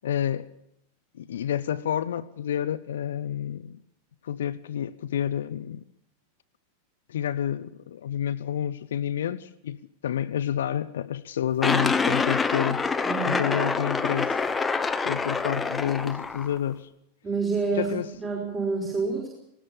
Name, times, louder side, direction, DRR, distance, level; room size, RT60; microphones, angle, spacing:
voice 1, 0.0-0.5 1.1-3.8 4.2-5.8 7.1-12.9 13.2-14.4 15.0-16.9 17.7-18.1, left 10 dB, 60° left, 0.7 m, -29 dB
sound 1, 11.6-16.6, left 4 dB, 15° left, 1.0 m, -26 dB
voice 2, 13.0-13.4 17.2-19.3, right 4 dB, 20° right, 5.0 m, -28 dB
19.5 x 18.5 x 7.2 m
figure-of-eight pair, 90°, 0 cm